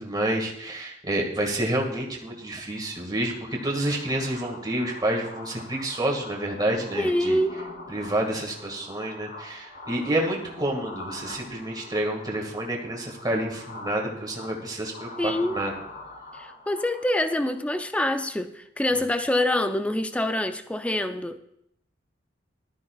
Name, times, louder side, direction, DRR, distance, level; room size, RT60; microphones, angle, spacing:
voice 1, 0.0-7.4 7.9-15.7, right 1 dB, 20° right, 1.9 m, -29 dB
sound 1, 2.4-17.7, left 2 dB, 50° left, 2.4 m, -44 dB
voice 2, 7.0-7.6 15.2-15.6 16.3-21.4, left 1 dB, 5° left, 0.4 m, -26 dB
18.5 x 12.5 x 2.4 m
head